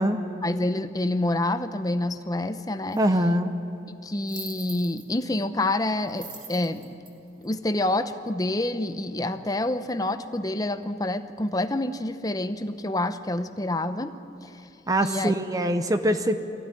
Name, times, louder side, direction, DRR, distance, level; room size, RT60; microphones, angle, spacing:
voice 1, 0.4-3.0 4.0-6.9 7.4-14.1 14.4-14.6 15.0-15.3, left 1 dB, 20° left, 10 dB, 0.7 m, -27 dB
sound 1, 2.9-3.0 4.2-5.2 6.1-7.9, right 5 dB, 45° right, 2.7 m, -43 dB
voice 2, 3.0-3.5 14.9-16.3, equal, 20° right, 8 dB, 0.7 m, -23 dB
22.5 x 15.0 x 9.9 m, 2.7 s
head